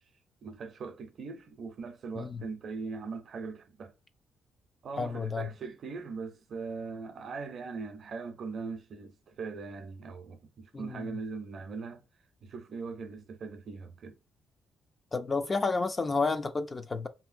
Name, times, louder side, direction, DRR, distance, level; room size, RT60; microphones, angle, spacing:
voice 1, 0.4-3.9 4.8-12.0 12.4-14.2, right 4 dB, 55° right, 0.5 m, -40 dB
voice 2, 5.0-5.5 10.7-11.2 15.1-17.1, left 4 dB, 30° left, 0.4 m, -31 dB
2.7 x 2.7 x 2.5 m
cardioid pair, 90°, 0 cm